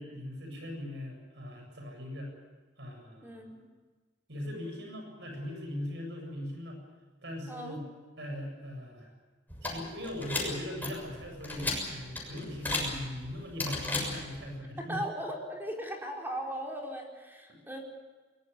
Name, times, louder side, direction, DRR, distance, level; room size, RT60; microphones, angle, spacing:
voice 1, 0.0-2.3 2.8-3.4 4.3-6.8 7.2-7.8 8.2-9.1 9.6-15.0 17.5-17.6, left 1 dB, 70° right, 3 dB, 7.7 m, -40 dB
voice 2, 3.2-3.6 7.5-7.8 14.8-17.8, right 1 dB, 10° right, 0 dB, 4.8 m, -38 dB
sound 1, 9.5-14.5, left 2 dB, 10° left, 6.8 m, -36 dB
23.0 x 22.5 x 7.0 m, 1.3 s
head